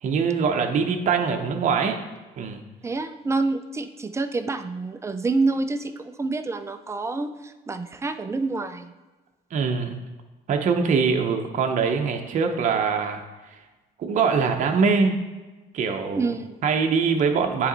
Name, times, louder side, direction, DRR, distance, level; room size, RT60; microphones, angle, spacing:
voice 1, 0.0-2.0 2.4-2.6 9.5-10.0 10.5-13.2 14.0-15.2 15.7-16.3 16.6-17.7, right 5 dB, 45° right, 4 dB, 0.8 m, -23 dB
voice 2, 2.8-8.9 16.2-16.6, right 3 dB, 15° right, 9 dB, 0.4 m, -27 dB
9.6 x 3.2 x 4.0 m, 1.2 s
cardioid pair, 110°, 17 cm